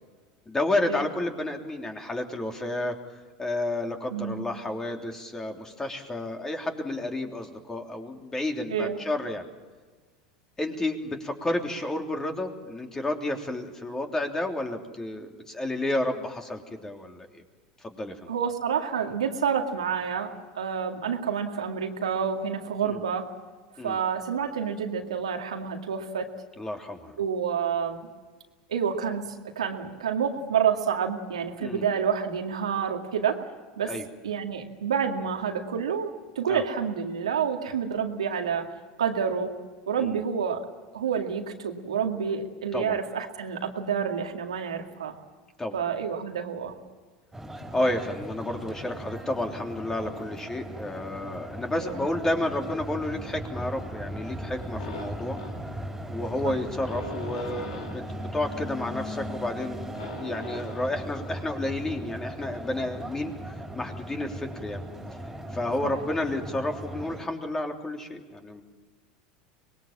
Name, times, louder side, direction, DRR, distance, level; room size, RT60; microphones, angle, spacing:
voice 1, 0.5-2.9 3.4-9.5 10.6-17.4 17.8-18.1 22.8-23.0 23.8-24.0 26.6-27.2 31.6-31.8 33.9-34.1 36.5-36.6 40.0-40.2 42.7-43.0 45.6-45.8 47.7-55.4 56.1-63.3 63.7-64.8 65.5-68.6, left 1 dB, 15° left, 3 dB, 3.3 m, -31 dB
voice 2, 4.1-4.5 8.7-9.0 18.3-23.3 23.8-26.3 27.2-28.1 28.7-33.4 33.8-33.9 34.2-38.7 39.0-39.5 39.9-40.6 40.9-45.1 45.7-46.7 51.8-52.0 56.4-56.5, right 7 dB, 90° right, 3 dB, 2.2 m, -28 dB
sound 1, 47.3-67.2, equal, 10° right, 4.4 m, -38 dB
sound 2, 54.8-62.3, left 1 dB, 85° left, 4.0 m, -43 dB
25.0 x 21.0 x 7.4 m, 1.4 s
hypercardioid pair, 85°, 3 cm